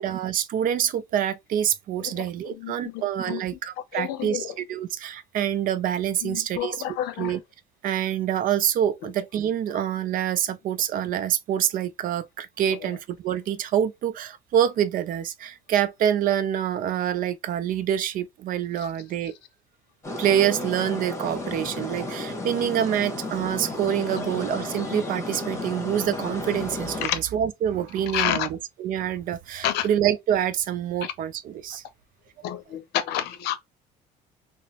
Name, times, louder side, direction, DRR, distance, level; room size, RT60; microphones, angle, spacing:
voice 1, 0.0-6.8 7.2-7.4 7.8-19.3 20.2-31.8, right 10 dB, 55° right, 0.5 m, -26 dB
voice 2, 2.0-3.4 3.9-4.5 6.2-7.3 27.0-27.2 28.1-28.5 29.6-29.9 31.0-31.1 32.4-33.6, left 11 dB, 70° left, 0.6 m, -29 dB
sound 1, 20.0-27.1, left 2 dB, 15° left, 1.2 m, -33 dB
2.8 x 2.1 x 2.8 m
supercardioid pair, 90°, 17 cm